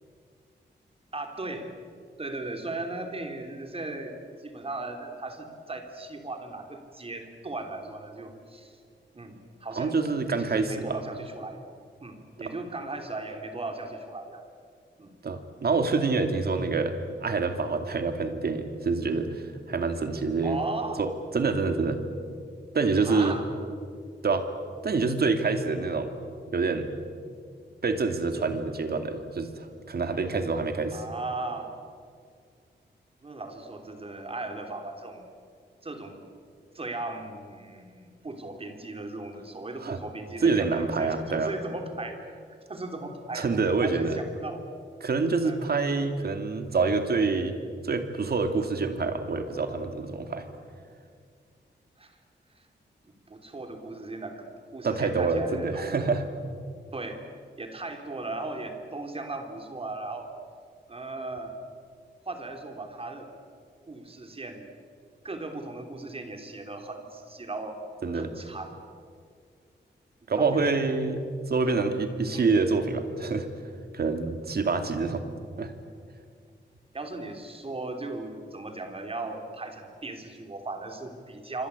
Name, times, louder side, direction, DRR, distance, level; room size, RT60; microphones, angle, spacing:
voice 1, 1.1-1.7 2.2-8.7 9.1-10.0 10.4-11.6 12.0-14.4 15.0-15.1 20.4-21.0 23.0-23.5 30.9-31.7 33.2-35.3 35.8-36.2 36.7-43.5 43.8-44.6 45.4-45.7 52.0-52.2 52.6-52.7 53.3-56.1 56.9-57.2 57.6-60.3 60.9-61.5 62.2-63.3 63.9-64.7 65.2-67.8 68.1-68.8 70.2-70.7 71.6-71.9 72.3-72.5 76.9-81.7, right 2 dB, 30° right, 5 dB, 3.4 m, -37 dB
voice 2, 9.7-11.0 15.2-20.6 21.0-21.1 21.3-22.0 22.7-23.4 24.2-24.5 24.8-26.1 26.5-26.9 27.8-31.0 39.8-40.0 40.4-41.5 43.3-44.2 45.0-47.6 47.8-50.4 54.8-56.2 68.0-68.3 70.3-73.5 73.9-75.2 75.6-75.7, right 4 dB, 60° right, 7 dB, 2.6 m, -26 dB
27.0 x 25.5 x 8.5 m, 2.2 s
wide cardioid pair, 160°, 19 cm